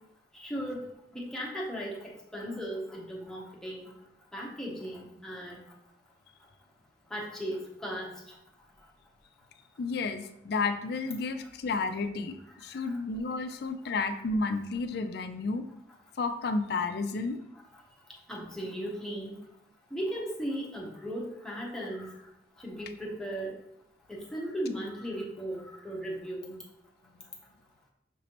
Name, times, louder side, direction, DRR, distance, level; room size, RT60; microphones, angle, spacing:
voice 1, 0.3-0.9 1.1-3.9 4.3-5.6 7.1-8.1 12.7-13.0 18.3-19.4 19.9-22.2 22.6-23.5 24.1-26.6, equal, 5° left, -3 dB, 0.8 m, -37 dB
voice 2, 9.8-15.7 16.2-17.4, left 3 dB, 60° left, 9 dB, 0.4 m, -31 dB
6.0 x 3.1 x 2.9 m, 0.80 s
head